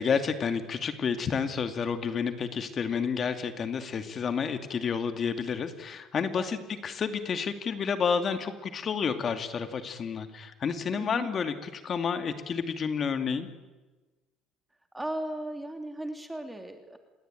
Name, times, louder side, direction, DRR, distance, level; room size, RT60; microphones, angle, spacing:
voice 1, 0.0-6.6 6.8-13.5, left 6 dB, 40° left, 8 dB, 2.5 m, -30 dB
voice 2, 11.0-11.3 14.9-17.0, right 1 dB, 10° right, 6 dB, 2.9 m, -36 dB
27.5 x 21.5 x 9.3 m, 1.2 s
cardioid pair, 110°, 0 cm